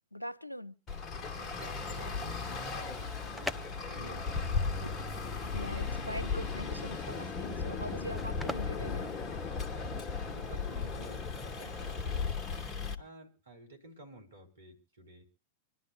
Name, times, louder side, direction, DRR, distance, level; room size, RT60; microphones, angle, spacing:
voice 1, 0.1-0.7 4.8-4.9 5.5-9.1, equal, 90° left, 17 dB, 0.7 m, -42 dB
Traffic noise roadway noise, 0.9-13.0, left 4 dB, 25° left, 1.5 m, -36 dB
voice 2, 1.4-5.0 9.5-10.0 10.2-12.5 13.0-15.2, right 2 dB, 70° right, 3 dB, 3.8 m, -52 dB
sound 1, 3.0-9.9, left 1 dB, ahead, 0.7 m, -45 dB
26.0 x 11.5 x 2.4 m, 0.31 s
figure-of-eight pair, 95°, 0 cm